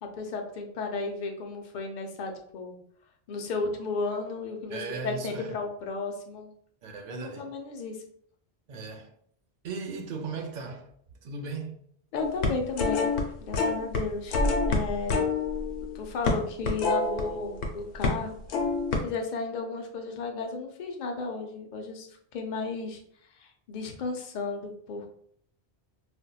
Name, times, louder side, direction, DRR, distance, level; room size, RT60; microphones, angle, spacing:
voice 1, 0.0-2.8 3.3-6.5 7.1-8.0 12.1-13.1 13.4-15.3 15.9-18.4 19.0-22.1 22.3-23.0 23.4-25.1, left 4 dB, 55° left, 0.6 m, -34 dB
voice 2, 4.7-5.5 6.8-7.5 8.7-9.1 9.6-10.9 11.2-11.8, right 5 dB, 55° right, 0.6 m, -37 dB
sound 1, 12.2-13.2 13.5-14.0 14.3-17.7 18.0-18.2 18.5-19.0, left 3 dB, 85° left, 0.9 m, -27 dB
4.3 x 2.1 x 2.3 m
omnidirectional pair, 1.1 m